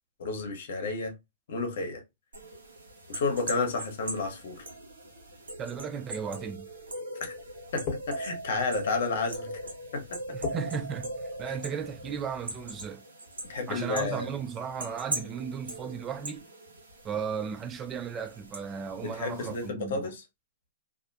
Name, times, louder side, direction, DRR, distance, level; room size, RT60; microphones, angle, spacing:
voice 1, 0.2-1.1 1.5-2.0 3.1-4.7 7.2-7.4 7.7-9.5 9.9-10.4 11.5-11.6 13.5-14.3 19.0-20.2, left 3 dB, 65° left, 0.9 m, -31 dB
sound 1, 2.3-19.7, right 2 dB, 85° right, 0.9 m, -41 dB
voice 2, 5.6-6.7 10.3-11.1 11.4-13.0 13.7-16.4 17.0-20.1, right 6 dB, 25° right, 0.3 m, -35 dB
sound 2, 7.3-12.8, left 6 dB, 40° left, 1.0 m, -44 dB
2.4 x 2.1 x 2.6 m
hypercardioid pair, 120°, 0 cm